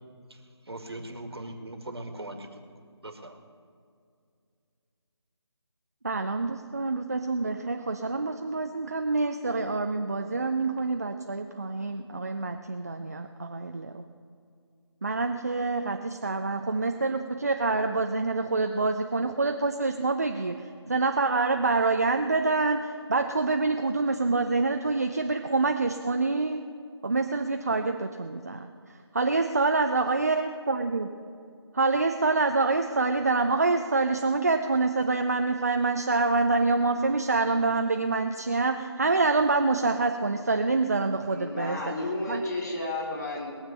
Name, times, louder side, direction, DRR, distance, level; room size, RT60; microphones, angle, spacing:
voice 1, 0.7-2.5 3.0-3.4, right 1 dB, 60° right, 5 dB, 1.8 m, -39 dB
voice 2, 6.0-14.0 15.0-26.6 27.0-31.1 31.7-41.9 42.3-42.4, right 3 dB, 35° right, 5 dB, 0.5 m, -26 dB
voice 3, 41.2-43.6, left 2 dB, 40° left, -3 dB, 3.8 m, -32 dB
21.0 x 7.4 x 6.8 m, 2.3 s
figure-of-eight pair, 160°, 15 cm